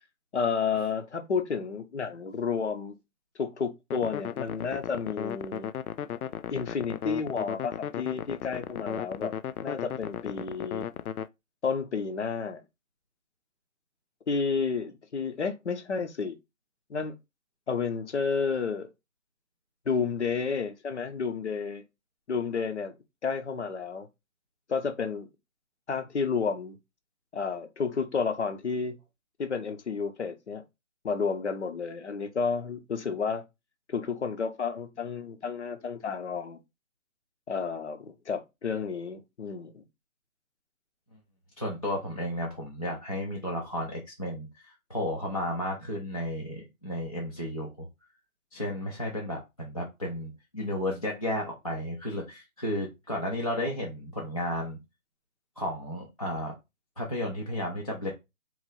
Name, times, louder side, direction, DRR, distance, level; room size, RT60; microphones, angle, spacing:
voice 1, 0.3-3.0 3.4-5.7 6.5-9.3 9.6-10.9 11.6-12.6 14.3-16.4 16.9-17.1 17.7-18.9 19.9-21.8 22.3-22.9 23.2-24.1 24.7-25.3 25.9-26.8 27.3-29.0 29.4-30.6 31.0-33.4 33.9-36.6 37.5-39.8, left 5 dB, 55° left, 0.8 m, -31 dB
sound 1, 3.9-11.3, left 9 dB, 85° left, 0.5 m, -36 dB
voice 2, 41.6-47.9 48.5-54.8 55.6-56.5 57.0-58.1, left 1 dB, 25° left, 0.5 m, -33 dB
3.9 x 3.1 x 3.7 m
hypercardioid pair, 165°, 43 cm